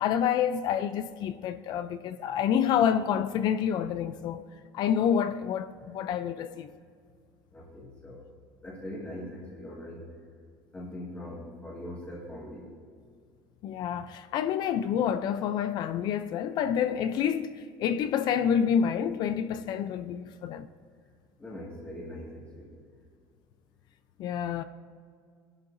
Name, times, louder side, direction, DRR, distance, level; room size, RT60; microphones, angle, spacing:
voice 1, 0.0-4.4 4.7-6.7 13.6-17.5 17.8-20.7 24.2-24.6, left 8 dB, 50° left, 0.5 m, -28 dB
voice 2, 7.5-8.2 8.6-10.0 10.7-12.7 21.4-22.3, left 1 dB, 15° left, 2.1 m, -41 dB
19.5 x 11.5 x 2.7 m
cardioid pair, 150°, 9 cm